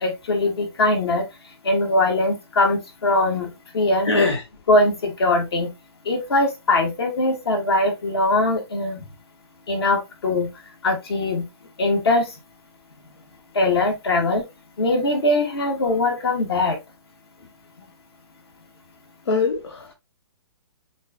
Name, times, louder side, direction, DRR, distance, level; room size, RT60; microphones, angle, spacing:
voice 1, 0.0-1.2 1.6-3.5 3.7-4.1 4.7-5.7 6.1-9.0 9.7-10.5 10.8-11.4 11.8-12.3 13.5-14.4 14.8-16.8, left 2 dB, 65° left, 1.8 m, -21 dB
voice 2, 4.0-4.4 19.3-19.9, left 3 dB, 85° left, 0.8 m, -22 dB
6.3 x 2.6 x 2.9 m
hypercardioid pair, 135°, 14 cm